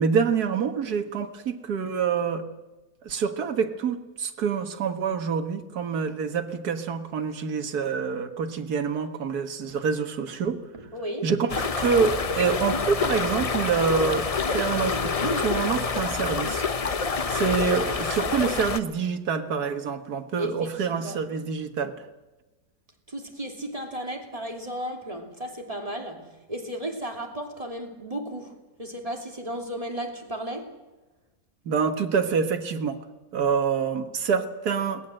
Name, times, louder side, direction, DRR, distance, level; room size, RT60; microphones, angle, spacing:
voice 1, 0.0-2.4 3.0-10.7 11.2-17.0 17.3-22.1 31.7-33.0 33.3-35.1, right 6 dB, 80° right, 2.0 m, -26 dB
voice 2, 10.9-11.3 20.4-20.7 21.0-21.2 23.1-30.7, equal, 20° right, 3.1 m, -34 dB
sound 1, 11.5-18.8, left 5 dB, 35° left, 0.6 m, -27 dB
22.0 x 19.0 x 7.8 m
omnidirectional pair, 1.6 m